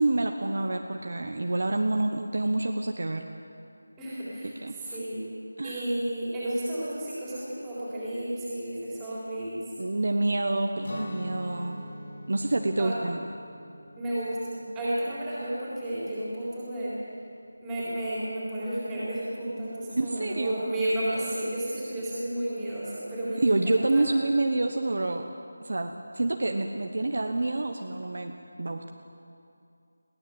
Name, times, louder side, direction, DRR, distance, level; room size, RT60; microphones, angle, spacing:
voice 1, 0.0-3.3 4.4-5.0 5.6-5.9 9.8-11.9 12.3-13.2 20.0-20.7 23.4-25.2 25.6-28.3 28.6-28.9, right 2 dB, 45° right, 4 dB, 1.1 m, -27 dB
voice 2, 4.0-5.2 5.6-9.6 12.8-12.9 14.0-16.9 17.6-24.0, right 1 dB, 5° right, -10 dB, 3.9 m, -32 dB
Guitar, 10.8-16.7, left 1 dB, 35° left, 2.2 m, -43 dB
22.0 x 17.5 x 8.0 m, 2.6 s
figure-of-eight pair, 180°, 0 cm